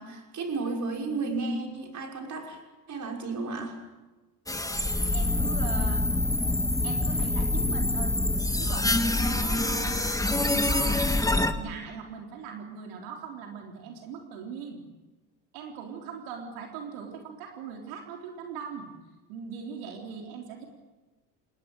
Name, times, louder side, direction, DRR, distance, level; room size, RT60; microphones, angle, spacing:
voice 1, 0.0-2.6 2.9-3.8, right 3 dB, 40° right, 2 dB, 6.2 m, -33 dB
sound 1, 4.5-11.5, left 2 dB, 10° left, 1.9 m, -26 dB
voice 2, 5.1-6.1 6.8-8.2 8.6-10.0 10.3-11.1 11.6-14.8 15.5-18.9 19.3-20.6, right 6 dB, 85° right, 2 dB, 3.8 m, -40 dB
28.5 x 20.0 x 9.0 m, 1.2 s
supercardioid pair, 95°, 44 cm